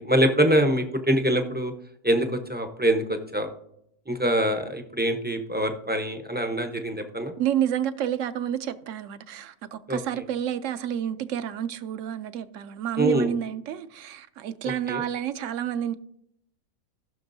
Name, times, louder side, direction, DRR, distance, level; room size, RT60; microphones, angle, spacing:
voice 1, 0.0-1.7 2.0-3.5 4.1-7.3 9.9-10.0 13.0-13.3 14.9-15.0, right 1 dB, 10° right, 0.4 m, -24 dB
voice 2, 7.4-15.9, right 10 dB, 70° right, 0.8 m, -29 dB
17.5 x 6.1 x 2.6 m
omnidirectional pair, 1.6 m